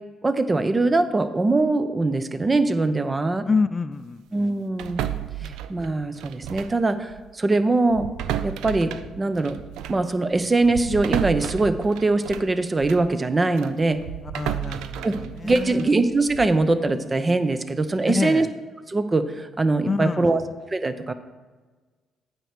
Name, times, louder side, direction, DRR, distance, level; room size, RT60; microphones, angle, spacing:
voice 1, 0.2-3.5 4.3-5.0 5.4-8.1 8.4-9.6 9.9-14.0 15.0-15.1 15.4-18.5 18.9-20.4 20.7-21.1, right 2 dB, 30° right, 11 dB, 0.8 m, -22 dB
voice 2, 3.5-4.2 5.4-5.5 14.3-15.9 18.0-18.5 19.8-20.4, left 4 dB, 35° left, 12 dB, 0.4 m, -27 dB
sound 1, 4.8-6.8 7.1-7.3 7.9-13.1 13.6-16.6, right 11 dB, 75° right, 0.3 m, -33 dB
9.0 x 4.5 x 6.7 m, 1.3 s
hypercardioid pair, 45°, 0 cm